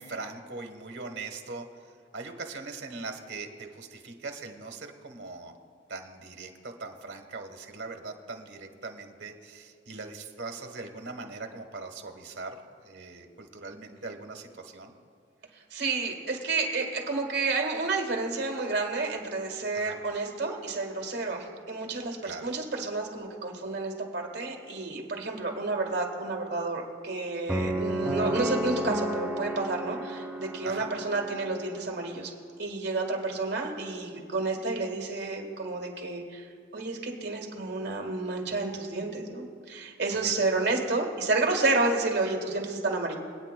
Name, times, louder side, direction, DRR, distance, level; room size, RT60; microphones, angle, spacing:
voice 1, 0.0-1.8 2.1-5.5 5.9-14.9 19.7-20.0 22.2-22.5 30.6-30.9 40.2-40.3, right 3 dB, 85° right, 5 dB, 1.1 m, -41 dB
voice 2, 15.7-32.3 32.6-36.4 36.7-43.2, right 3 dB, 65° right, 1 dB, 1.7 m, -30 dB
sound 1, 27.5-31.6, right 1 dB, 5° right, 0.6 m, -32 dB
26.0 x 8.9 x 2.2 m, 2.1 s
head